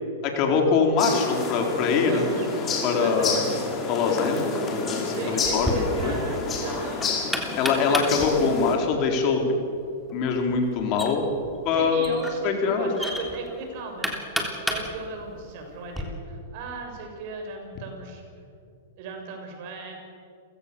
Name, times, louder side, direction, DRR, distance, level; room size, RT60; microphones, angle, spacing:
voice 1, 0.2-2.3 2.8-3.4 3.9-6.2 7.6-9.4 10.1-11.3 11.6-12.0 12.4-12.9, left 5 dB, 45° left, 2 dB, 4.2 m, -23 dB
sound 1, 1.0-8.8, left 4 dB, 25° left, 5.1 m, -30 dB
voice 2, 2.0-2.5 2.9-3.5 5.0-7.1 11.7-18.2 19.0-19.9, right 3 dB, 55° right, 2 dB, 6.5 m, -36 dB
Knock, 5.4-16.0, left 1 dB, ahead, 3.5 m, -34 dB
29.5 x 16.5 x 7.0 m, 2.5 s
hypercardioid pair, 120°, 0 cm